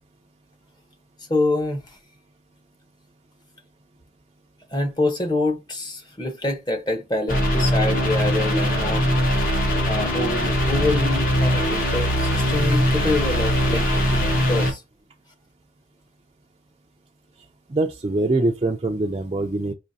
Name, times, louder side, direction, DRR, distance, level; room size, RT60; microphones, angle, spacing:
voice 1, 1.3-1.8 4.7-9.5 9.8-14.8, left 2 dB, 25° left, 0.9 m, -26 dB
sound 1, 7.3-14.7, equal, 50° left, 1.3 m, -21 dB
voice 2, 17.7-19.7, right 2 dB, 30° right, 0.4 m, -23 dB
5.0 x 3.1 x 2.7 m
head